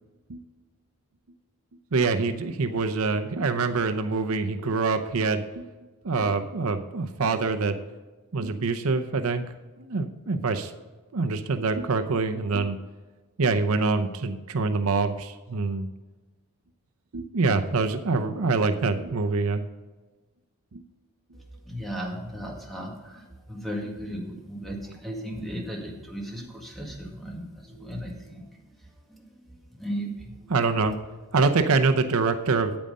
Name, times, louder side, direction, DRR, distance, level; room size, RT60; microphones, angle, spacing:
voice 1, 1.9-5.7 6.0-7.8 8.3-9.5 9.8-10.7 11.1-12.8 13.4-15.9 17.1-19.6 20.7-20.8 30.5-31.0 31.3-32.8, right 4 dB, 70° right, 7 dB, 0.7 m, -25 dB
voice 2, 21.3-28.5 29.1-30.5, equal, ahead, -1 dB, 1.8 m, -36 dB
8.8 x 8.8 x 5.4 m, 1.2 s
head